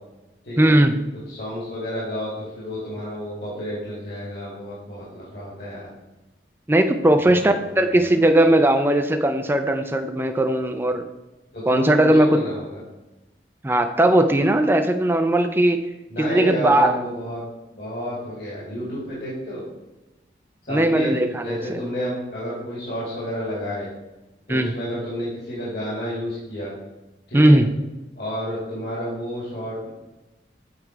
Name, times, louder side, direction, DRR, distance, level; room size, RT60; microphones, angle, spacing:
voice 1, 0.6-0.9 6.7-11.1 11.7-12.4 13.6-15.8 16.2-16.9 20.7-21.8 24.5-24.7 27.3-27.7, right 1 dB, 10° right, 6 dB, 0.4 m, -18 dB
voice 2, 1.3-5.9 7.2-8.1 11.5-12.8 16.1-17.4 17.7-19.6 20.6-23.9 24.5-26.7 27.3-27.6 28.2-29.9, equal, 60° left, -7 dB, 2.2 m, -30 dB
7.8 x 4.7 x 4.5 m, 1.0 s
head